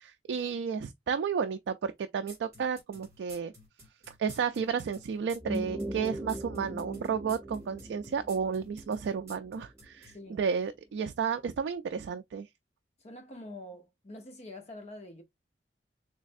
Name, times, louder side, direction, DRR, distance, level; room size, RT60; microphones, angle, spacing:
voice 1, 0.0-3.5 4.1-12.5, right 6 dB, 75° right, 0.3 m, -32 dB
sound 1, 2.3-10.1, right 1 dB, 20° right, 1.9 m, -52 dB
sound 2, 5.3-10.1, right 1 dB, 5° right, 0.6 m, -40 dB
voice 2, 10.1-10.4 13.0-15.2, left 1 dB, 40° left, 0.8 m, -46 dB
3.3 x 3.1 x 2.5 m
head